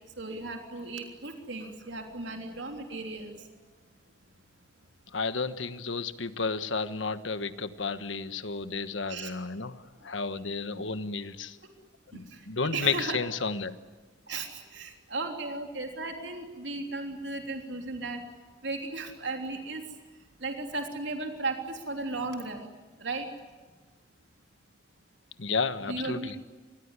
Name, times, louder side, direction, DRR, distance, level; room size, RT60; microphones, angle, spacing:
voice 1, 0.2-3.4 9.1-9.3 10.8-10.9 12.1-12.4 12.7-13.2 14.3-18.2 18.6-19.9 20.4-22.7 23.0-23.3 25.8-26.4, right 3 dB, 70° right, 3 dB, 3.3 m, -35 dB
voice 2, 5.1-11.6 12.1-13.8 25.4-26.3, left 4 dB, 85° left, 11 dB, 1.3 m, -32 dB
27.0 x 21.5 x 9.8 m, 1.3 s
head